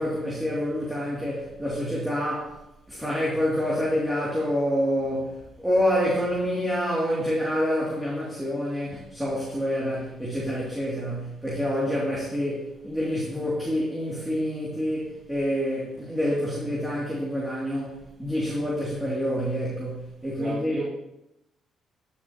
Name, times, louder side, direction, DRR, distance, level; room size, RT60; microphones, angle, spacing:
voice 1, 0.0-2.6 2.9-20.8, equal, 5° right, -6 dB, 2.8 m, -27 dB
voice 2, 20.2-20.9, right 3 dB, 40° right, -7 dB, 2.3 m, -34 dB
12.5 x 7.4 x 3.0 m, 0.89 s
cardioid pair, 90°, 0 cm